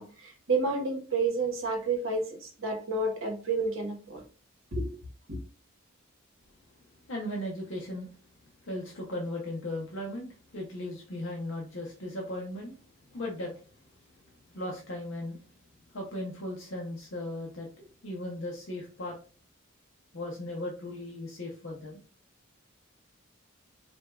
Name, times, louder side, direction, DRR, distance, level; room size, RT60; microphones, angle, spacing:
voice 1, 0.0-4.2 4.7-5.0 5.3-5.4, right 3 dB, 75° right, 1.1 m, -30 dB
voice 2, 7.1-8.1 8.6-12.8 13.1-13.7 14.5-15.4 15.9-19.2 20.1-22.0, left 1 dB, 65° left, 0.7 m, -37 dB
4.9 x 2.3 x 2.3 m
head